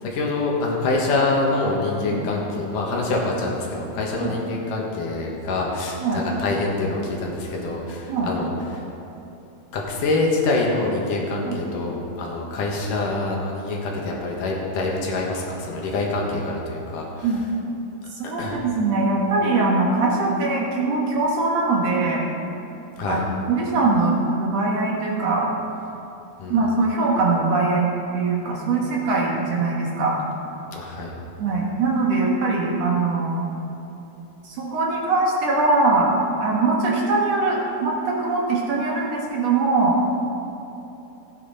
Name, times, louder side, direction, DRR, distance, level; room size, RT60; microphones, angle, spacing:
voice 1, 0.0-8.8 9.7-17.4 18.2-18.6 23.0-23.3 26.4-26.7 30.7-31.1, left 2 dB, 75° left, -1 dB, 3.1 m, -25 dB
voice 2, 18.2-22.2 23.0-25.5 26.5-30.2 31.4-33.4 34.5-36.2 36.4-40.0, right 3 dB, 60° right, -2 dB, 2.3 m, -22 dB
16.5 x 9.6 x 4.2 m, 3.0 s
omnidirectional pair, 3.7 m